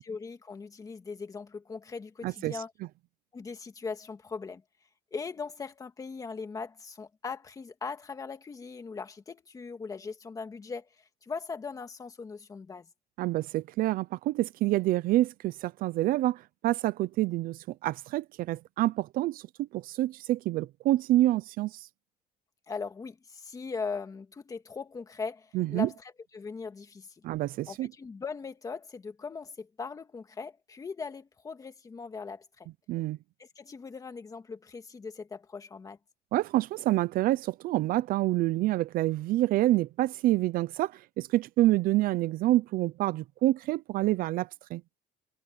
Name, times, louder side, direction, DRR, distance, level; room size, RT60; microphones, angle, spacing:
voice 1, 0.0-2.7 3.3-4.6 5.1-12.9 22.7-27.2 27.7-32.7 33.4-36.0, left 5 dB, 20° left, 1.9 m, -40 dB
voice 2, 2.2-2.6 13.2-21.9 25.5-25.9 27.2-27.9 32.9-33.2 36.3-44.8, right 16 dB, 60° right, 0.5 m, -27 dB
cardioid pair, 170°, 17 cm